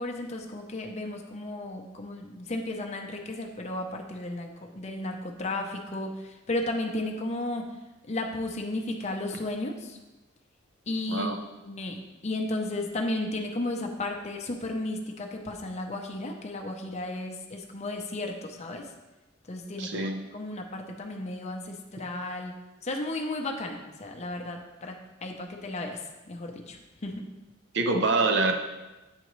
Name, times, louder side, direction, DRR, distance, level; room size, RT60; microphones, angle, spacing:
voice 1, 0.0-7.6 8.1-10.0 10.9-18.9 19.5-22.5 22.8-25.0 25.2-26.0 26.3-27.2, left 2 dB, 35° left, 2 dB, 0.6 m, -34 dB
voice 2, 11.1-11.4 19.8-20.2 27.7-28.5, right 3 dB, 60° right, 5 dB, 0.6 m, -25 dB
8.1 x 3.8 x 3.0 m, 1.1 s
head